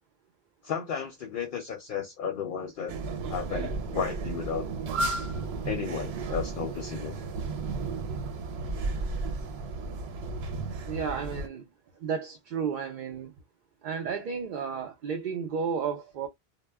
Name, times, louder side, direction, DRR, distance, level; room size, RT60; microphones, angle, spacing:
voice 1, 0.6-2.9 3.3-4.6 5.6-7.2, left 7 dB, 60° left, 0.7 m, -33 dB
sound 1, 2.9-11.5, right 3 dB, 85° right, 0.9 m, -33 dB
voice 2, 10.9-11.7 12.0-13.3 13.8-16.3, right 6 dB, 60° right, 0.6 m, -32 dB
2.2 x 2.0 x 3.3 m
omnidirectional pair, 1.0 m